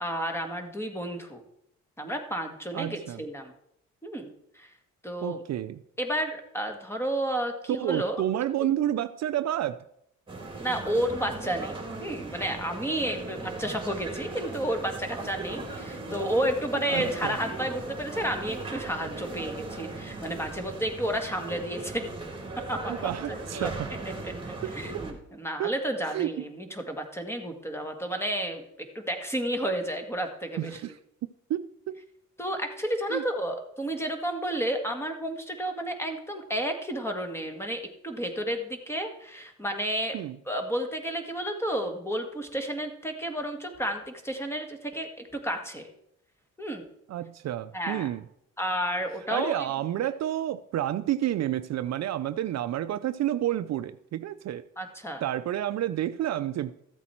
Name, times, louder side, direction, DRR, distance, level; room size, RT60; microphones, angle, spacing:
voice 1, 0.0-1.4 2.0-3.5 4.0-4.3 4.5-4.7 5.0-5.4 6.0-8.2 10.6-22.1 22.7-23.7 24.2-28.6 28.9-30.8 32.4-40.2 40.5-45.9 46.6-46.9 47.7-48.1 48.6-49.7 54.8-55.2, right 1 dB, 10° left, 5 dB, 1.9 m, -31 dB
voice 2, 2.7-3.2 5.2-5.8 7.7-9.8 16.9-17.3 22.9-23.8 24.6-24.7 25.6-25.7 26.1-26.3 30.6-30.9 31.5-32.0 33.1-33.2 40.1-40.4 47.1-48.2 49.3-54.6 55.2-56.7, right 12 dB, 60° right, 12 dB, 0.5 m, -30 dB
sound 1, 10.3-25.1, right 2 dB, 15° right, 2.8 m, -38 dB
14.0 x 8.3 x 4.5 m, 0.75 s
cardioid pair, 90°, 30 cm